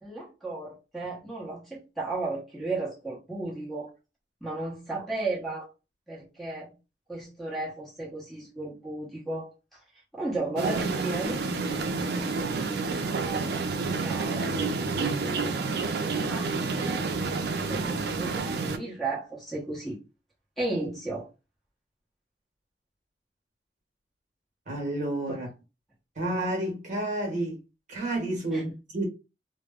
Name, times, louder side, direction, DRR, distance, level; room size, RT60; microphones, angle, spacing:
voice 1, 0.0-3.9 4.4-5.7 6.1-6.7 7.1-9.8 10.1-11.9 12.5-14.5 16.2-17.1 17.6-20.0 20.6-21.3 25.3-25.4 28.5-28.6, right 2 dB, ahead, 0.9 m, -35 dB
sound 1, 10.6-18.8, right 4 dB, 60° right, 0.4 m, -29 dB
voice 2, 24.7-25.5 26.2-27.6 27.9-29.0, right 1 dB, 45° right, 1.1 m, -30 dB
2.1 x 2.0 x 3.5 m
head